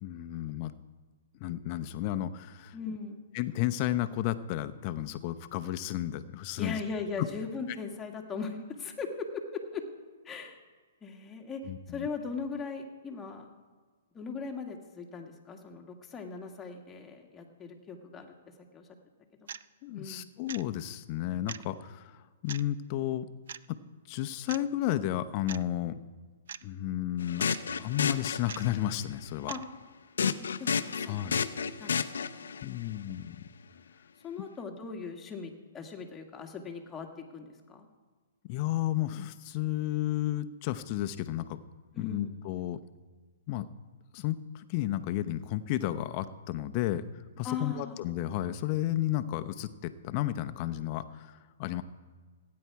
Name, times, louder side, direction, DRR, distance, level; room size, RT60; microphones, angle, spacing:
voice 1, 0.0-0.7 1.4-3.0 3.3-6.8 7.2-7.3 11.7-12.1 19.8-23.3 23.7-23.8 24.1-26.0 26.6-27.5 27.7-29.5 31.1-31.4 32.6-33.5 38.5-41.6 42.0-42.8 43.5-43.7 44.1-47.0 47.4-51.8, left 13 dB, 40° left, 11 dB, 0.8 m, -32 dB
voice 2, 2.7-3.2 6.6-9.8 10.2-10.6 11.0-11.6 11.9-13.5 14.1-18.4 18.7-18.9 19.9-20.3 29.5-29.6 30.2-31.3 31.8-32.0 32.3-32.4 34.2-37.9 41.9-42.4 47.4-48.1, left 5 dB, 15° left, 2 dB, 1.6 m, -39 dB
sound 1, 19.5-19.7 20.5-20.6 21.5-21.7 22.5-22.6 23.5-23.7 24.5-24.6 25.5-25.6 26.5-26.6 27.5-27.6 28.5-28.6 29.5-29.6, right 8 dB, 70° right, 0.4 m, -41 dB
sound 2, 27.2-28.9 30.2-32.6, left 6 dB, 80° left, 0.7 m, -31 dB
16.5 x 9.7 x 4.7 m, 1.5 s
hypercardioid pair, 140°, 0 cm